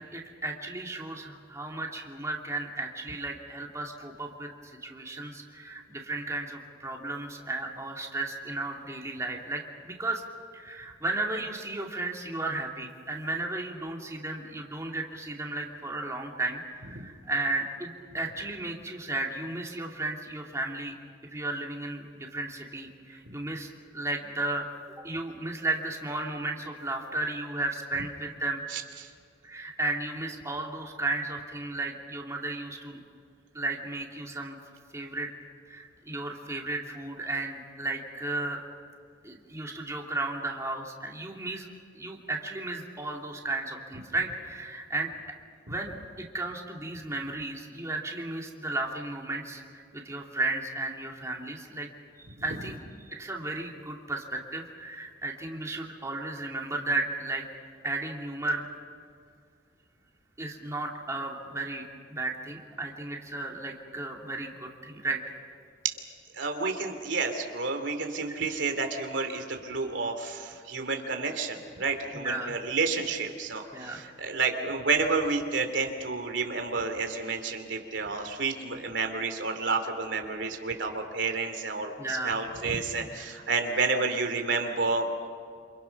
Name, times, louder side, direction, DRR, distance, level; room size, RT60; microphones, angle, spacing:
voice 1, 0.0-10.2 10.5-20.9 21.3-24.7 25.0-28.6 29.4-33.0 33.5-34.6 34.9-35.3 35.7-38.6 39.2-41.7 41.9-45.1 45.7-51.9 52.4-52.8 53.1-57.4 57.8-58.6 60.4-65.2 72.1-72.5 73.7-74.0 82.0-82.4, right 2 dB, 15° right, 0 dB, 2.7 m, -34 dB
voice 2, 28.7-29.1 45.7-45.8 66.3-85.3, right 4 dB, 85° right, 5 dB, 2.9 m, -30 dB
28.5 x 27.5 x 6.0 m, 2.3 s
head